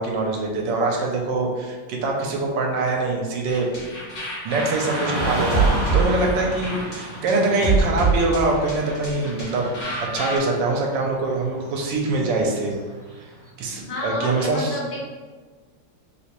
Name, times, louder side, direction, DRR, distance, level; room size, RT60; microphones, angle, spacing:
voice 1, 0.0-3.7 4.4-9.7 10.1-12.7 13.6-14.8, right 3 dB, 80° right, 0 dB, 1.3 m, -24 dB
sound 1, 3.5-10.4, right 4 dB, 45° left, 1.2 m, -25 dB
Car passing by / Traffic noise roadway noise, 4.5-13.5, right 1 dB, 55° right, 1.4 m, -33 dB
voice 2, 13.9-15.0, left 2 dB, 75° left, -4 dB, 1.4 m, -30 dB
3.4 x 2.9 x 2.9 m, 1.4 s
omnidirectional pair, 2.0 m